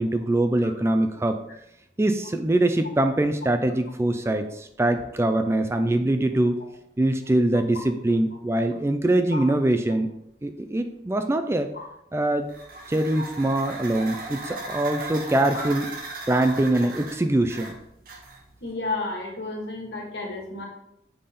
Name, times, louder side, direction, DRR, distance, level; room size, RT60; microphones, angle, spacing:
voice 1, 0.0-1.4 2.0-6.6 7.0-10.1 10.4-11.7 12.1-12.5 12.9-15.9 16.3-17.7, right 1 dB, 15° right, 8 dB, 0.4 m, -23 dB
sound 1, 12.4-18.6, right 2 dB, 55° right, 1.1 m, -37 dB
voice 2, 18.6-20.7, left 2 dB, 75° left, 0 dB, 1.7 m, -32 dB
5.4 x 4.3 x 5.1 m, 0.80 s
head